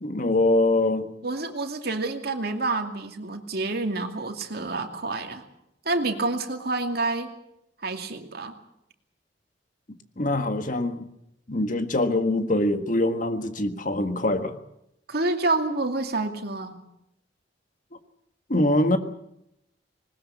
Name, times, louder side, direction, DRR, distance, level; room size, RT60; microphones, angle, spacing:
voice 1, 0.0-1.1 10.2-11.1 11.5-14.6 18.5-19.0, left 1 dB, 45° left, 8 dB, 1.7 m, -23 dB
voice 2, 1.2-5.4 5.8-7.3 7.8-8.5 15.1-16.8, right 3 dB, 60° right, 4 dB, 2.5 m, -28 dB
20.0 x 20.0 x 8.4 m, 0.80 s
head